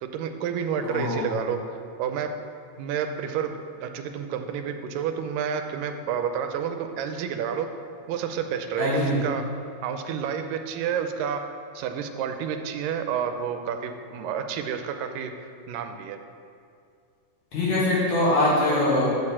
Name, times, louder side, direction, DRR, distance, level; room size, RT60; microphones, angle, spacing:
voice 1, 0.0-2.3 2.8-3.5 3.8-7.7 8.1-9.5 9.8-11.4 11.8-15.3 15.7-16.2, right 7 dB, 85° right, 7 dB, 2.2 m, -30 dB
voice 2, 0.8-1.3 8.8-9.2 17.5-19.1, left 1 dB, 65° left, -8 dB, 3.2 m, -22 dB
6.7 x 6.6 x 7.2 m, 2.3 s
omnidirectional pair, 3.9 m